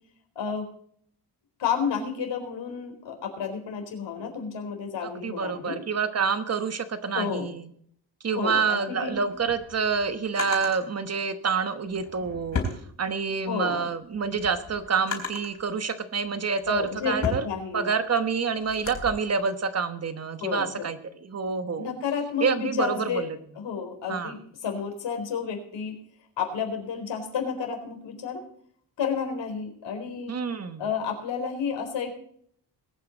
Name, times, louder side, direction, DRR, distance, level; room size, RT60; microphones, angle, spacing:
voice 1, 0.4-0.7 1.6-5.8 7.1-7.5 8.3-9.2 13.4-13.9 16.7-17.9 20.4-20.8 21.8-23.3 23.6-26.0 26.4-28.4 29.0-30.3 30.8-32.1, left 6 dB, 80° left, 3 dB, 4.4 m, -31 dB
voice 2, 5.0-7.7 8.2-12.6 13.0-17.5 17.7-21.9 22.4-23.4 24.1-24.4 30.3-30.9, right 5 dB, 35° right, 10 dB, 1.1 m, -27 dB
Drawer open or close, 9.2-10.8 11.8-13.5 13.9-15.6 16.3-19.1, left 3 dB, 40° left, 3.9 m, -35 dB
21.0 x 9.3 x 4.0 m, 0.63 s
wide cardioid pair, 180°, 43 cm